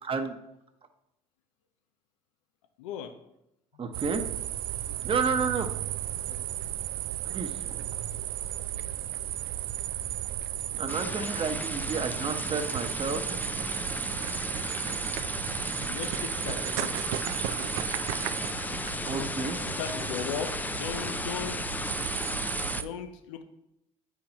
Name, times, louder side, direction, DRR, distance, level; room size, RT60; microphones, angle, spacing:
voice 1, 0.0-0.4 3.8-4.3 5.0-5.7 7.2-7.9 10.8-13.2 14.0-14.2 19.1-19.8, right 5 dB, 35° right, 7 dB, 1.0 m, -31 dB
voice 2, 2.8-3.1 3.7-4.0 6.3-6.4 15.9-17.0 19.6-21.7 22.8-23.4, left 7 dB, 85° left, 9 dB, 0.6 m, -37 dB
sound 1, 3.9-22.8, right 12 dB, 75° right, 0.4 m, -34 dB
sound 2, 10.9-22.8, left 2 dB, 10° left, 0.4 m, -35 dB
8.4 x 5.8 x 2.9 m, 0.84 s
hypercardioid pair, 70°, 15 cm